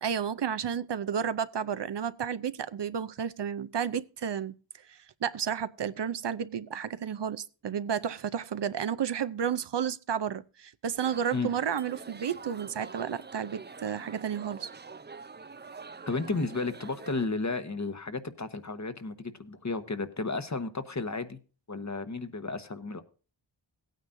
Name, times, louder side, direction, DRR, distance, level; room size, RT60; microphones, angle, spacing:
voice 1, 0.0-4.5 4.9-14.7, right 8 dB, 65° right, 0.6 m, -32 dB
sound 1, 11.0-17.3, right 4 dB, 25° right, 0.5 m, -46 dB
voice 2, 16.1-21.4 21.7-23.0, left 3 dB, 40° left, 1.1 m, -33 dB
17.0 x 9.3 x 2.6 m
wide cardioid pair, 60°, 45 cm